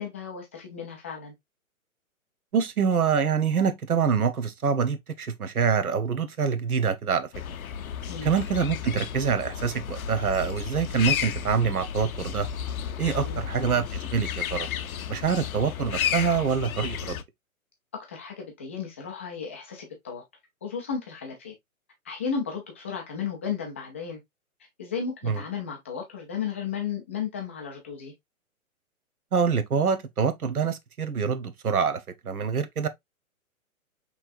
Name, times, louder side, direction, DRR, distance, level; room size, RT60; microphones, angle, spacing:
voice 1, 0.0-1.3 8.1-8.3 13.2-13.4 17.9-20.2 20.6-21.5 22.0-24.2 24.8-28.1, left 6 dB, 10° left, 0.4 m, -34 dB
voice 2, 2.5-7.3 8.2-12.5 13.0-14.7 15.1-17.2 25.2-25.4 29.3-32.9, right 6 dB, 90° right, 1.0 m, -25 dB
sound 1, 7.3-17.2, left 8 dB, 75° left, 0.7 m, -32 dB
5.6 x 3.2 x 2.5 m
hypercardioid pair, 135°, 43 cm